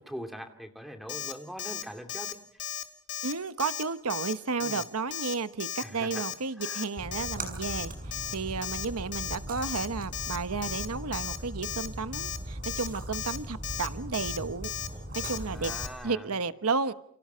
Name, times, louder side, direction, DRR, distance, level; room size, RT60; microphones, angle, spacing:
voice 1, 0.0-2.4 4.6-4.8 5.8-6.2 6.6-6.9 15.4-16.3, equal, ahead, 2.5 m, -42 dB
Alarm, 1.1-1.3 1.6-1.8 2.1-2.3 2.6-2.8 3.1-3.3 3.6-3.8 4.1-4.3 4.6-4.8 5.1-5.3 5.6-5.8 6.1-6.3 6.6-6.8 7.1-7.3 7.6-7.8 8.1-8.3 8.6-8.8 9.1-9.4 9.6-9.9 10.1-10.4 10.6-10.9 11.1-11.4 11.6-11.9 12.1-12.4 12.6-12.9 13.1-13.4 13.6-13.9 14.1-14.4 14.6-14.9 15.1-15.4 15.6-15.9, left 10 dB, 55° left, 2.5 m, -35 dB
voice 2, 3.2-14.7 15.1-15.7 16.0-16.9, right 4 dB, 90° right, 1.1 m, -32 dB
Splash splatter, 7.0-15.9, right 1 dB, 40° right, 5.8 m, -39 dB
29.5 x 29.5 x 5.7 m
head